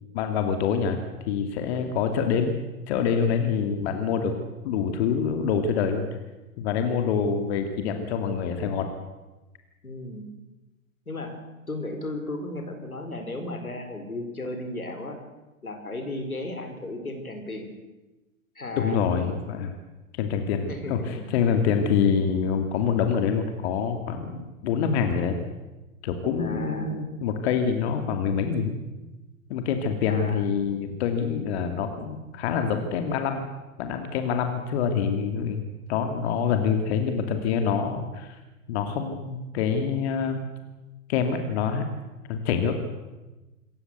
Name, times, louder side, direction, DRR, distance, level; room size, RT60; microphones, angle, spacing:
voice 1, 0.1-1.0 1.3-2.5 2.9-4.3 4.6-6.0 6.6-8.9 18.8-19.8 20.2-25.4 26.0-28.8 29.5-33.5 33.8-35.6 35.9-38.4 38.7-40.5 41.1-41.8 42.3-42.8, left 6 dB, 50° left, 6 dB, 2.6 m, -26 dB
voice 2, 9.8-10.3 11.1-11.4 11.7-15.2 15.6-17.7 18.5-19.1 20.7-21.2 26.4-27.0 30.1-30.5, left 2 dB, 90° left, 5 dB, 4.6 m, -35 dB
26.5 x 15.0 x 8.1 m, 1.1 s
figure-of-eight pair, 105°, 42 cm